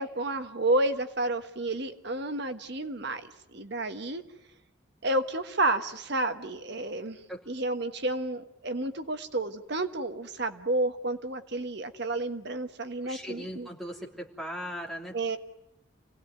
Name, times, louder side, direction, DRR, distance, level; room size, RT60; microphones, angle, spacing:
voice 1, 0.0-4.2 5.0-7.2 7.5-13.7 15.1-15.4, right 2 dB, 55° right, 9 dB, 1.4 m, -30 dB
voice 2, 13.0-15.4, equal, ahead, -1 dB, 3.1 m, -39 dB
27.0 x 18.0 x 9.3 m, 0.85 s
head